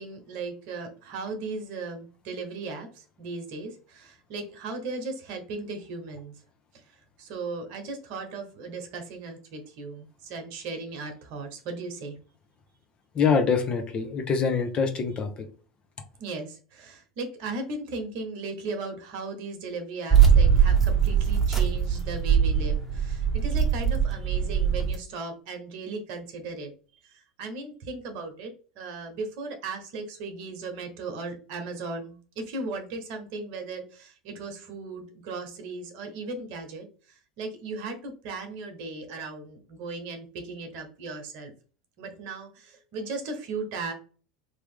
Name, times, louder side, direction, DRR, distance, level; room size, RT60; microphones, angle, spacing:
voice 1, 0.0-6.3 7.2-12.2 16.2-26.7 27.0-41.5 42.0-43.9, right 3 dB, 55° right, 6 dB, 1.1 m, -37 dB
voice 2, 13.1-15.5, left 5 dB, 35° left, 5 dB, 0.9 m, -25 dB
sound 1, 20.1-25.0, right 7 dB, 5° right, 1.1 m, -21 dB
3.5 x 2.9 x 3.6 m, 0.39 s
hypercardioid pair, 80°, 3 cm